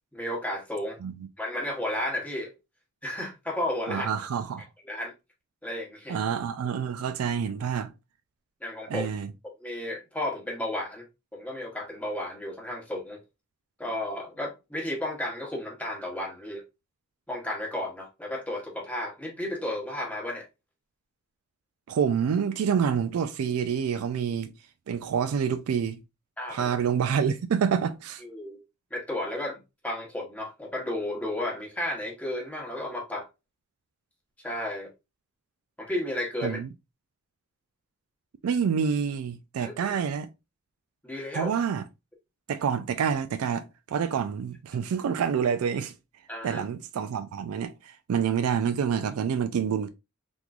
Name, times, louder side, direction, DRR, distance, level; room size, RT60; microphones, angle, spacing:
voice 1, 0.1-1.0 1.4-2.5 3.0-4.1 4.9-5.1 5.6-6.2 8.6-9.1 9.6-11.0 11.3-13.2 13.8-16.6 17.3-20.5 26.4-26.7 28.2-28.6 28.9-29.6 29.8-33.3 34.4-34.9 35.8-36.6 39.6-40.0 41.0-41.5 46.3-46.6, left 1 dB, 5° left, 1.0 m, -33 dB
voice 2, 3.9-4.7 6.1-7.9 8.9-9.3 21.9-24.5 24.9-26.0 26.5-28.2 36.4-36.7 38.4-40.3 41.3-41.8 42.5-45.9 46.4-49.9, right 7 dB, 85° right, 0.4 m, -27 dB
3.6 x 3.0 x 2.3 m
head